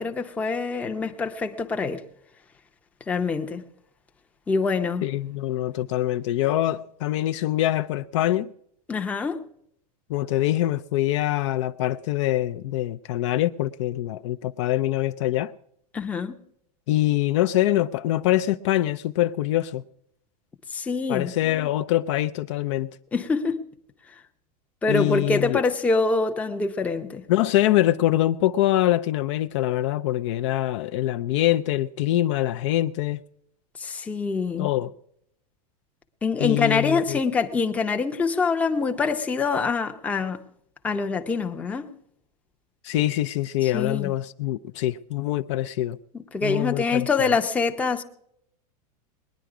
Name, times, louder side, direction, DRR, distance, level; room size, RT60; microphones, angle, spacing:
voice 1, 0.0-2.0 3.1-3.6 4.5-5.0 8.9-9.4 15.9-16.4 20.7-21.3 23.1-23.6 24.8-27.3 33.8-34.7 36.2-40.4 40.8-41.9 43.6-44.1 46.1-48.0, left 4 dB, 5° left, 0.6 m, -25 dB
voice 2, 5.0-8.5 10.1-15.5 16.9-19.8 21.1-22.9 24.9-25.6 27.3-33.2 34.6-34.9 36.4-37.2 42.8-46.0 46.4-47.1, left 14 dB, 50° left, 0.5 m, -24 dB
20.0 x 10.5 x 4.8 m
supercardioid pair, 170°, 20 cm